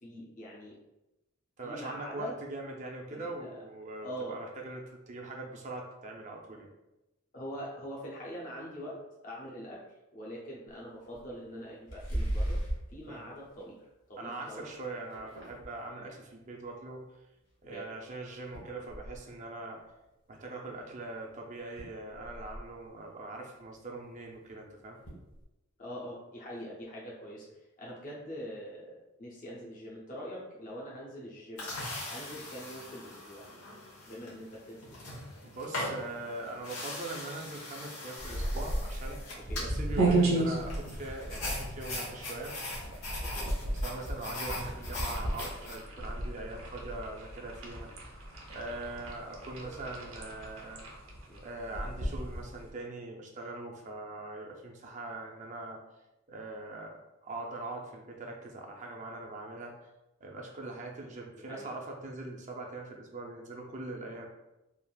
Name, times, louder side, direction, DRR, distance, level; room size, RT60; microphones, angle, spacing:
voice 1, 0.0-0.8 1.6-2.4 3.1-3.6 4.0-4.4 7.3-9.8 10.1-12.6 12.9-13.7 14.1-14.7 16.0-16.1 17.7-17.9 25.8-27.5 27.8-31.7 32.1-33.5 34.1-35.1 39.5-39.7 43.4-43.5 51.3-51.4 54.9-55.0 61.4-61.7, equal, 35° left, -5 dB, 0.5 m, -43 dB
voice 2, 1.6-6.7 13.1-13.3 14.2-17.1 17.6-19.8 20.3-25.0 35.4-42.6 43.8-48.1 48.5-50.9 51.3-55.8 56.3-59.8 60.2-64.3, right 2 dB, 35° right, 0 dB, 0.4 m, -42 dB
sound 1, 10.7-10.8 11.1-11.3 11.8-12.9 13.4-13.8 14.3-14.5 14.8-15.8 17.7-17.8 18.5-19.2 20.8-20.9 21.3-21.4 21.6-22.7 24.5-24.6 25.0-25.4, right 1 dB, 60° left, 1.1 m, -37 dB
sound 2, 31.6-45.8, left 1 dB, 85° left, 1.0 m, -41 dB
sound 3, 38.2-52.7, right 2 dB, 70° right, 0.6 m, -34 dB
3.3 x 2.4 x 2.2 m, 0.96 s
head